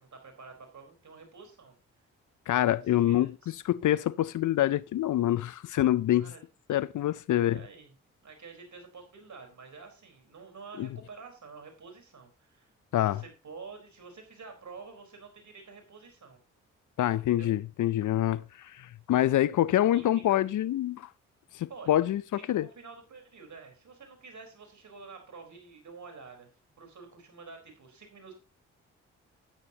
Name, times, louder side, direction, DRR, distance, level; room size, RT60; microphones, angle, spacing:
voice 1, 0.0-1.7 2.9-3.6 6.1-6.4 7.3-7.9 8.2-16.4 17.3-17.5 19.9-20.4 21.7-22.0 22.3-26.5 26.8-28.3, right 4 dB, 55° right, 4.5 m, -49 dB
voice 2, 2.5-3.3 3.6-6.3 6.7-7.6 10.8-10.9 12.9-13.2 17.0-21.1 21.5-22.2 22.5-22.7, left 13 dB, 60° left, 0.6 m, -26 dB
12.5 x 9.6 x 2.9 m
hypercardioid pair, 40°, 35 cm